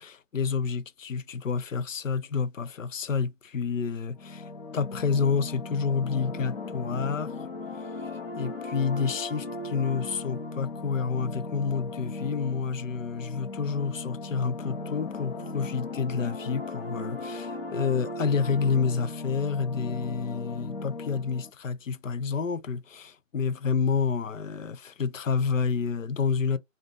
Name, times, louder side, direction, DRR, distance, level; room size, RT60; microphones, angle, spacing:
voice 1, 0.0-7.3 8.4-26.6, left 5 dB, 70° left, 0.7 m, -29 dB
sound 1, 4.1-21.5, left 3 dB, 40° left, 1.3 m, -37 dB
3.7 x 2.6 x 3.8 m
hypercardioid pair, 165°, 40 cm